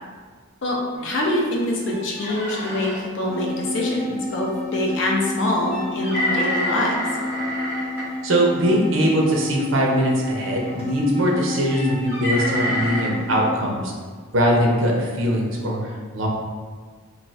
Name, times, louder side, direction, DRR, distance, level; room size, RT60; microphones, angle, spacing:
voice 1, 0.6-7.1, left 1 dB, 65° left, -2 dB, 0.6 m, -24 dB
sound 1, 1.0-1.1 1.4-1.5 1.8-3.0 4.9-5.0 5.7-8.0 9.1-9.4 10.6-10.9 11.6-13.1, equal, 10° right, 1.2 m, -28 dB
sound 2, 3.3-13.7, left 2 dB, 15° left, 1.0 m, -30 dB
voice 2, 8.2-13.8 14.3-15.8 16.1-16.3, equal, 75° right, -2 dB, 0.6 m, -21 dB
2.5 x 2.4 x 3.2 m, 1.5 s
head